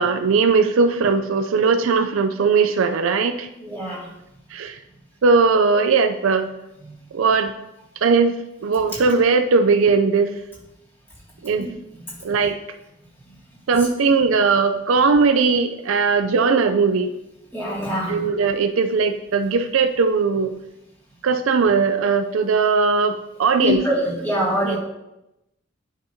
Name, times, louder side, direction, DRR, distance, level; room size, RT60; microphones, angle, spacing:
voice 1, 0.0-3.5 4.5-4.7 5.2-6.5 7.1-7.5 8.0-10.3 11.4-11.7 12.2-12.6 13.7-17.1 18.1-20.5 21.2-23.8 24.6-24.8, right 4 dB, 80° right, 9 dB, 0.4 m, -19 dB
voice 2, 3.6-4.0 6.8-6.9 11.6-11.7 17.5-18.2 23.6-24.8, equal, 10° left, -6 dB, 2.3 m, -24 dB
10.5 x 5.3 x 2.8 m, 0.90 s
head